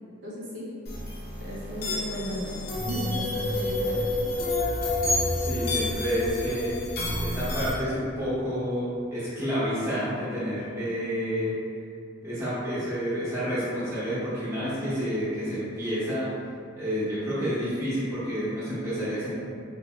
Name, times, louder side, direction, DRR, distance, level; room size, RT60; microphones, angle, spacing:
voice 1, 0.2-0.6 1.4-4.3, equal, 70° right, -7 dB, 0.6 m, -35 dB
sound 1, 0.9-7.7, left 2 dB, 50° left, 0.5 m, -29 dB
voice 2, 5.3-6.8 7.2-11.5 12.2-16.3 16.8-19.3, equal, 15° right, -12 dB, 0.8 m, -29 dB
2.6 x 2.2 x 3.0 m, 2.4 s
head